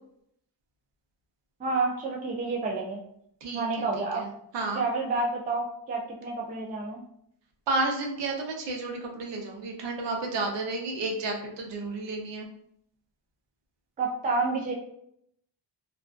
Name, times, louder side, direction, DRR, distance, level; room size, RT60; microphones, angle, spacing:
voice 1, 1.6-3.0 3.5-4.3 4.8-7.0 14.0-14.7, right 3 dB, 20° right, -1 dB, 0.3 m, -29 dB
voice 2, 3.4-3.9 4.1-4.3 4.5-4.8 7.7-12.5, right 2 dB, 70° right, 1 dB, 0.7 m, -31 dB
2.4 x 2.2 x 2.3 m, 0.71 s
wide cardioid pair, 135°, 44 cm